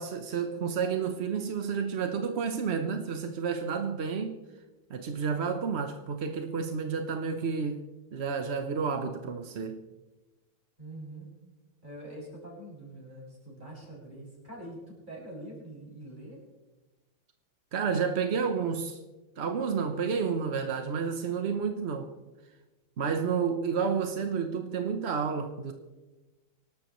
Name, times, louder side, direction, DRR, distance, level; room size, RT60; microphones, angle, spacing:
voice 1, 0.0-4.4 4.9-7.8 8.1-9.8 17.7-19.0 19.4-22.1 23.0-25.7, right 6 dB, 55° right, 6 dB, 0.7 m, -30 dB
voice 2, 10.8-11.3 11.8-16.4 19.9-20.1, right 1 dB, 20° right, -5 dB, 6.7 m, -45 dB
24.5 x 12.5 x 3.1 m, 1.1 s
omnidirectional pair, 2.3 m